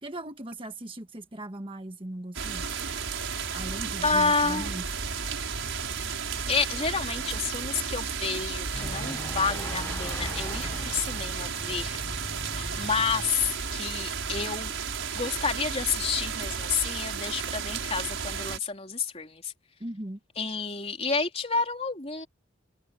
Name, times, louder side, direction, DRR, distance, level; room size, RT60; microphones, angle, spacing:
voice 1, 0.0-2.7 3.5-5.0 19.8-20.2, right 1 dB, 25° right, 1.4 m, -38 dB
sound 1, 2.3-18.6, right 6 dB, 75° right, 5.8 m, -33 dB
voice 2, 4.0-4.7 6.5-12.0 12.5-14.7 15.1-19.5 20.4-22.3, left 5 dB, 30° left, 3.8 m, -29 dB
sound 2, 8.7-13.8, left 1 dB, 10° left, 0.9 m, -40 dB
head